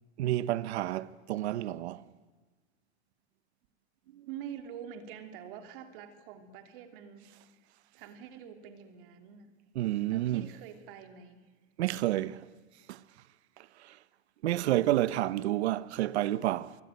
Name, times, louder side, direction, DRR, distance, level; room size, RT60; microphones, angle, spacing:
voice 1, 0.2-2.0 4.1-4.3 9.8-10.4 11.8-12.4 12.9-13.0 13.8-14.0 14.4-16.8, right 14 dB, 80° right, 0.9 m, -30 dB
voice 2, 4.2-7.3 7.6-7.7 7.9-9.5 10.1-11.4, right 9 dB, 55° right, 3.0 m, -46 dB
23.5 x 23.5 x 9.2 m
supercardioid pair, 155°, 33 cm